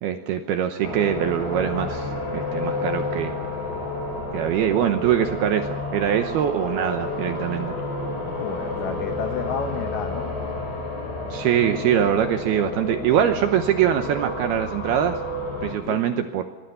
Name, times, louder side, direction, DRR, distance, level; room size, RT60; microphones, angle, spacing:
voice 1, 0.0-3.3 4.3-7.7 11.3-15.2 15.6-16.4, right 10 dB, 80° right, 8 dB, 2.3 m, -23 dB
sound 1, 0.8-15.7, left 2 dB, 20° left, 5.0 m, -30 dB
voice 2, 8.3-10.3 15.9-16.0, left 6 dB, 85° left, 7 dB, 1.9 m, -31 dB
25.0 x 19.0 x 6.7 m, 1.3 s
omnidirectional pair, 5.6 m